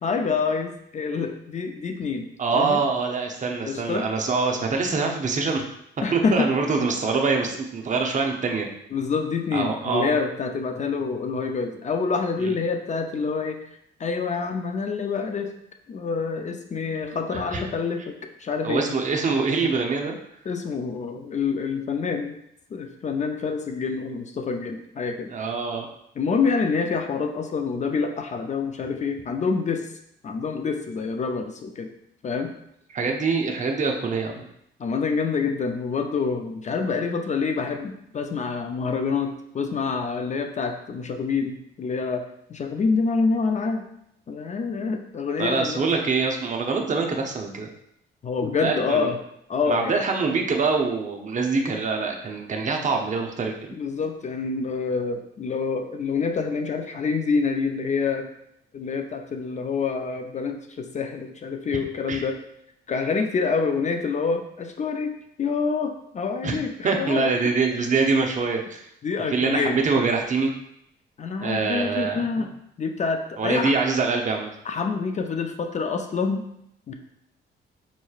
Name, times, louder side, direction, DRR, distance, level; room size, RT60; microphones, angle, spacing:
voice 1, 0.0-2.3 2.5-2.8 3.6-4.1 6.0-6.5 8.9-13.6 14.0-15.5 15.9-18.1 18.4-18.9 20.5-22.4 22.7-25.3 26.2-29.8 30.2-31.9 32.2-32.5 34.8-42.2 42.5-43.9 44.3-45.8 48.2-49.2 49.5-50.0 53.7-58.3 58.7-62.4 62.9-67.5 69.0-69.8 71.2-72.5 72.8-73.7 74.7-76.5 76.9-77.0, left 5 dB, 35° left, 5 dB, 0.4 m, -27 dB
voice 2, 2.4-5.6 6.1-8.7 9.5-10.1 12.4-12.6 17.3-17.6 18.6-20.1 25.3-25.9 32.9-34.5 45.4-47.7 48.6-49.1 49.7-53.5 62.1-62.2 66.4-66.6 66.8-68.8 69.3-70.5 71.4-72.4 73.4-74.5, right 4 dB, 40° right, 2 dB, 0.7 m, -24 dB
5.3 x 3.0 x 2.4 m, 0.76 s
cardioid pair, 90°, 20 cm